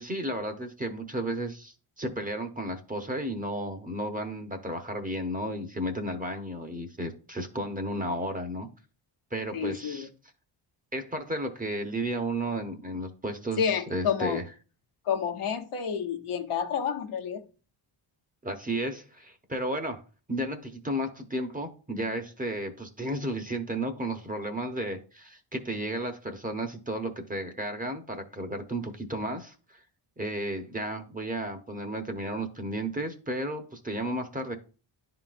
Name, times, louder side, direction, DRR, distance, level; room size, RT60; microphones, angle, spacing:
voice 1, 0.0-8.7 9.3-10.1 10.9-14.4 18.4-20.0 20.3-29.8 30.2-34.6, right 1 dB, 15° right, 6 dB, 0.8 m, -33 dB
voice 2, 9.5-10.1 13.6-14.4 15.0-17.4, left 7 dB, 80° left, 4 dB, 1.0 m, -29 dB
10.5 x 3.9 x 2.5 m, 0.37 s
cardioid pair, 105°, 49 cm